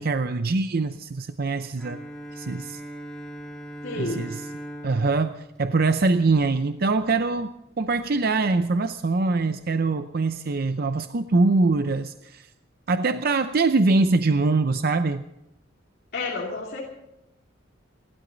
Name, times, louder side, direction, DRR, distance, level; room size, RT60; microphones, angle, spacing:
voice 1, 0.0-2.0 2.4-2.8 4.0-4.4 4.8-12.5 12.9-15.2, right 3 dB, 50° right, 9 dB, 0.6 m, -23 dB
Bowed string instrument, 1.8-6.7, right 1 dB, 5° left, 2.7 m, -40 dB
voice 2, 3.8-4.3 16.1-16.8, left 3 dB, 50° left, -3 dB, 2.7 m, -30 dB
28.5 x 12.5 x 4.0 m, 0.88 s
head